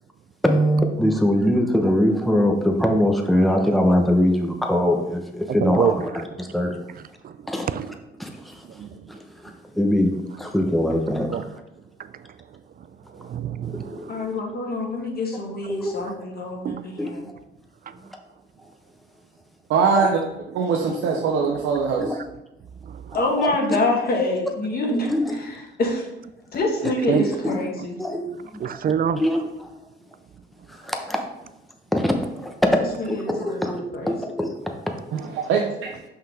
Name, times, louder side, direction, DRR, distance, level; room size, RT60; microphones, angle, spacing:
voice 1, 0.4-6.8 7.5-7.7 8.2-8.6 9.1-11.4 13.6-14.3 15.7-16.1 17.0-17.2 20.0-20.1 20.8-20.9 21.4-21.5 22.0-22.1 23.1-23.5 25.1-25.3 27.4-27.6 28.0-28.6 29.1-29.7 30.7-31.3 31.9-32.1 32.4-32.7 33.1-33.8 34.1-34.5, equal, ahead, 3 dB, 0.9 m, -22 dB
voice 2, 5.6-5.9 7.2-7.3 7.7-7.9 8.8-8.9 11.3-11.4 13.1-14.1 16.6-16.8 17.9-18.0 20.7-20.8 22.8-23.2 27.1-27.2 27.8-27.9 28.6-29.2, right 8 dB, 50° right, 13 dB, 0.4 m, -26 dB
voice 3, 14.1-17.3 23.1-25.5 25.8-26.1 26.5-27.9 33.0-34.2, left 2 dB, 50° left, 1 dB, 1.6 m, -26 dB
voice 4, 19.7-20.2 20.5-22.1 35.1-36.0, right 5 dB, 90° right, 0 dB, 0.8 m, -22 dB
5.7 x 5.6 x 3.5 m, 0.93 s
cardioid pair, 90°, 20 cm